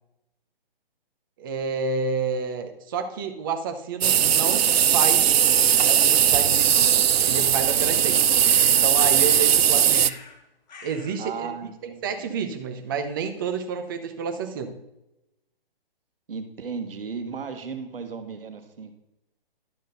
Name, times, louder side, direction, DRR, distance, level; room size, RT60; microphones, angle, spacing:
voice 1, 1.4-4.7 4.9-5.3 5.8-8.3 8.7-10.2 10.8-11.7 12.0-14.8, right 5 dB, 20° right, 6 dB, 0.8 m, -30 dB
sound 1, 4.0-10.1, right 9 dB, 85° right, 0.5 m, -19 dB
sound 2, 8.4-9.6 9.9-10.4 10.7-11.2, left 3 dB, 45° left, 1.8 m, -44 dB
voice 2, 11.2-12.3 16.3-19.0, right 5 dB, 70° right, 7 dB, 1.5 m, -35 dB
11.5 x 6.3 x 3.9 m, 0.90 s
hypercardioid pair, 160°, 30 cm